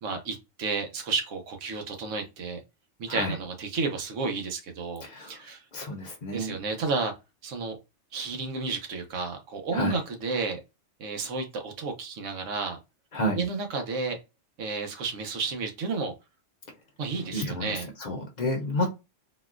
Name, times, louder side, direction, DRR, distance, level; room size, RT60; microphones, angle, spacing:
voice 1, 0.0-2.6 3.0-5.6 6.3-7.1 7.4-7.8 8.1-10.6 11.0-12.8 13.3-14.2 14.6-16.1 17.0-17.9, right 4 dB, 75° right, 1.1 m, -31 dB
voice 2, 5.0-5.4 5.7-6.6 9.7-10.0 13.1-13.4 17.3-18.9, left 1 dB, 45° left, 0.6 m, -30 dB
4.0 x 2.2 x 2.4 m
omnidirectional pair, 1.3 m